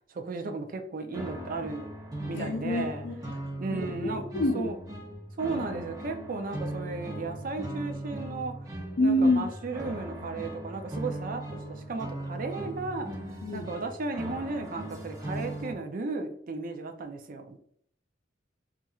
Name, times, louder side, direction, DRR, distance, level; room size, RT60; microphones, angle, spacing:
voice 1, 0.1-1.9 2.2-3.0 3.6-4.2 4.5-4.8 5.4-8.6 9.0-13.1 13.5-17.6, right 3 dB, 50° right, 5 dB, 0.5 m, -35 dB
sound 1, 1.1-15.7, right 1 dB, 20° right, 1.0 m, -39 dB
voice 2, 2.3-3.4 3.7-4.7 9.0-9.5 13.4-13.7, left 1 dB, 70° left, 0 dB, 0.5 m, -27 dB
4.2 x 2.5 x 2.3 m, 0.64 s
head